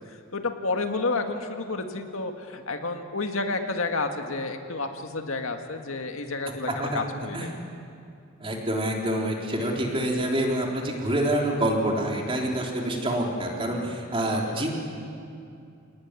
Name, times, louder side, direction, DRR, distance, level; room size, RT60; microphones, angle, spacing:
voice 1, 0.1-7.5 14.3-14.7, left 3 dB, 80° left, 5 dB, 2.0 m, -30 dB
voice 2, 8.4-14.7, right 1 dB, 25° right, -1 dB, 3.7 m, -27 dB
28.0 x 18.5 x 9.8 m, 2.5 s
head